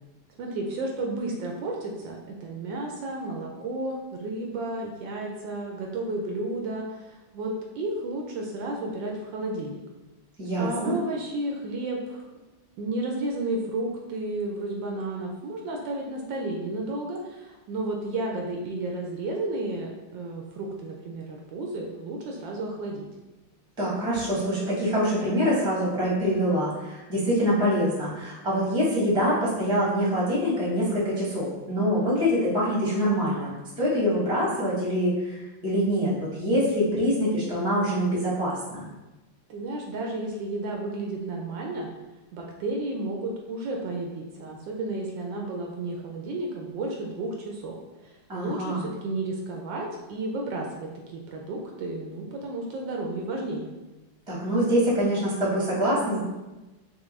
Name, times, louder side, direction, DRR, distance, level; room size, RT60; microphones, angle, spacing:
voice 1, 0.4-9.8 10.6-12.3 12.8-23.1 39.5-41.9 42.3-47.7 48.0-53.7, right 2 dB, 75° right, 0 dB, 1.2 m, -32 dB
voice 2, 10.4-10.9 23.8-33.5 33.8-38.8 48.3-48.8 54.3-56.2, equal, 5° right, -6 dB, 0.8 m, -25 dB
5.8 x 2.2 x 3.2 m, 1.1 s
omnidirectional pair, 2.2 m